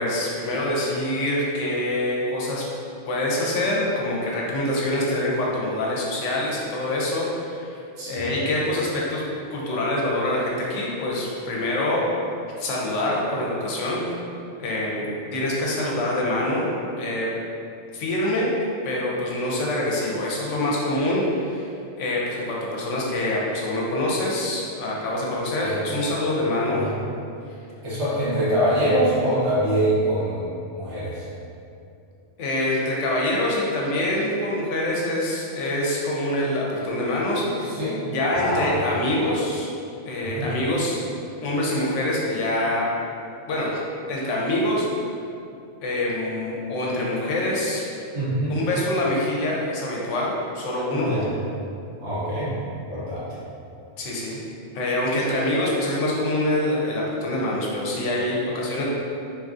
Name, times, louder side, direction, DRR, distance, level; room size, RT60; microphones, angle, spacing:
voice 1, 0.0-2.7 3.1-7.8 8.1-12.0 12.6-14.0 14.6-16.7 17.0-17.3 17.9-21.7 22.0-26.8 32.4-37.7 38.0-39.7 40.1-41.0 41.4-42.9 43.5-43.8 44.1-45.0 45.8-47.8 48.5-51.1 54.0-54.4 54.7-58.9, left 1 dB, 85° left, -3 dB, 0.9 m, -25 dB
voice 2, 8.0-8.3 25.6-25.8 26.7-26.9 27.8-30.5 30.7-31.3 37.6-38.0 38.3-38.9 40.2-40.5 48.1-48.6 50.9-51.3 52.0-52.5 52.9-53.2, right 1 dB, 70° right, -9 dB, 1.2 m, -24 dB
2.9 x 2.5 x 2.3 m, 2.6 s
omnidirectional pair, 1.2 m